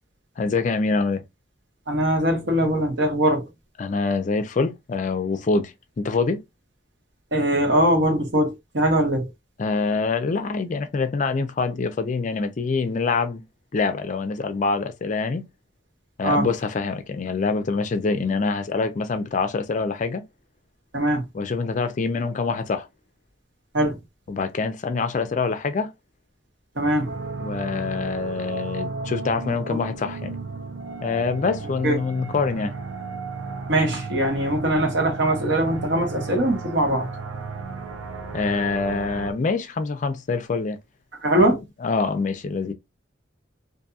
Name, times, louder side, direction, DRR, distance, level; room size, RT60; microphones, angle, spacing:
voice 1, 0.4-1.2 3.8-6.4 9.6-13.4 13.7-15.5 16.2-20.2 21.3-22.9 24.3-25.9 27.4-30.4 31.0-32.7 38.3-40.8 41.4-42.7, left 4 dB, 40° left, 0.4 m, -25 dB
voice 2, 1.9-3.5 7.3-9.3 16.2-16.5 20.9-21.2 23.7-24.0 26.8-27.1 31.8-32.0 33.7-37.1 41.2-41.6, right 1 dB, 65° right, 1.1 m, -21 dB
sound 1, 27.0-39.3, right 4 dB, 85° right, 0.6 m, -34 dB
2.7 x 2.6 x 2.3 m
head